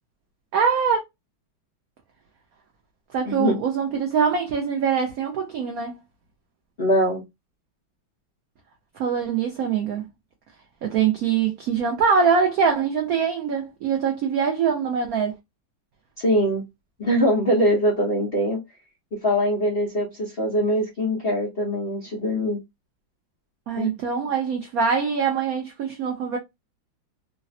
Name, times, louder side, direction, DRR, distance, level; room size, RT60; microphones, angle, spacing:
voice 1, 0.5-1.0 3.1-6.0 9.0-10.0 10.8-15.3 23.7-26.4, right 6 dB, 90° right, 0.7 m, -23 dB
voice 2, 3.3-3.6 6.8-7.2 16.2-16.6 17.0-18.6 19.2-22.6 23.8-23.9, equal, 55° left, 0.6 m, -22 dB
3.2 x 2.0 x 2.6 m
omnidirectional pair, 2.2 m